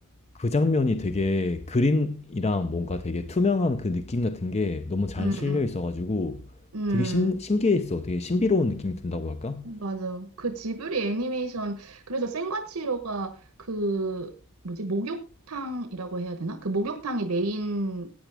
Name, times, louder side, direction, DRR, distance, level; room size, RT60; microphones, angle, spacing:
voice 1, 0.4-6.4 6.9-9.7, left 3 dB, 30° left, 0.6 m, -26 dB
voice 2, 5.2-5.6 6.7-7.3 9.6-14.3 14.6-18.1, right 2 dB, 75° right, 1.1 m, -30 dB
15.0 x 9.1 x 3.4 m
head